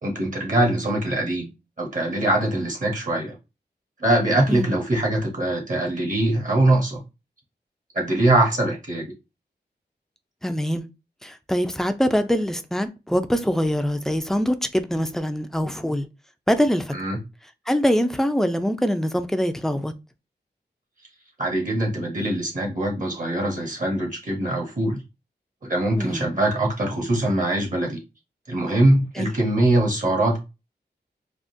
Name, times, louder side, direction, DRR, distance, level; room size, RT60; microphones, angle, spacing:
voice 1, 0.0-1.5 1.8-3.3 4.0-7.0 7.9-9.1 16.9-17.2 21.4-25.0 25.6-28.0 28.5-30.4, right 1 dB, 50° right, 1.0 m, -22 dB
voice 2, 10.4-10.9 11.2-16.1 16.5-16.9 17.7-19.9 26.0-26.3 29.2-29.3, equal, ahead, 0.4 m, -23 dB
3.6 x 2.3 x 2.6 m
wide cardioid pair, 85°, 18 cm